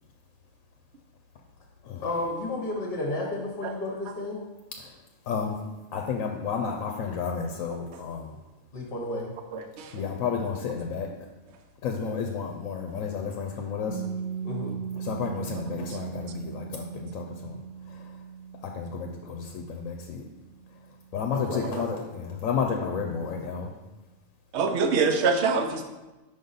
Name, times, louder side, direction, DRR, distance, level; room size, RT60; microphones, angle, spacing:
voice 1, 2.0-4.4 8.7-9.3 14.4-14.8 21.5-21.8, left 2 dB, 50° left, -2 dB, 1.0 m, -32 dB
voice 2, 5.3-5.6 5.9-8.3 9.9-11.1 11.8-14.0 15.0-17.6 17.9-18.2 18.6-20.2 21.1-23.7, left 6 dB, 90° left, 3 dB, 1.0 m, -31 dB
voice 3, 9.5-10.0 24.5-25.8, right 4 dB, 65° right, 5 dB, 0.9 m, -25 dB
Piano, 13.9-21.2, right 7 dB, 40° right, 0.7 m, -38 dB
5.6 x 5.3 x 4.0 m, 1.1 s
omnidirectional pair, 1.4 m